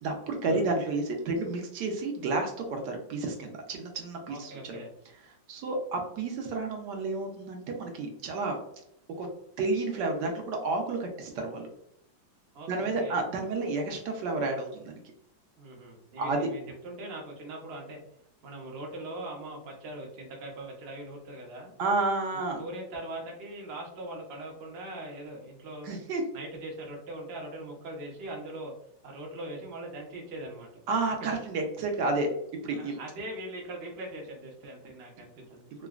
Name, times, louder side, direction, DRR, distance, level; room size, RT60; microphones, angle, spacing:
voice 1, 0.0-4.8 5.5-8.6 9.2-9.3 9.6-11.7 12.7-15.0 16.2-16.5 21.8-22.6 25.8-26.2 30.9-32.3 32.6-33.0, right 3 dB, 70° right, 2 dB, 1.1 m, -31 dB
voice 2, 4.3-4.9 12.5-13.2 15.6-18.0 18.4-21.7 22.6-26.0 26.3-28.7 29.0-30.7 32.7-35.7, right 1 dB, 85° right, -1 dB, 0.5 m, -41 dB
3.7 x 2.1 x 2.3 m, 0.74 s
omnidirectional pair, 2.2 m